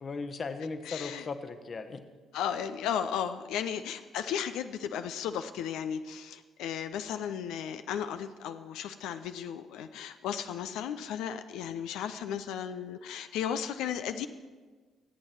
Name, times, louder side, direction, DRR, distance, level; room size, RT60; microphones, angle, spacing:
voice 1, 0.0-2.0, left 4 dB, 40° left, 8 dB, 1.2 m, -37 dB
voice 2, 0.9-1.2 2.3-14.3, left 8 dB, 60° left, 9 dB, 0.5 m, -35 dB
24.0 x 8.9 x 4.5 m, 1.4 s
figure-of-eight pair, 45°, 0 cm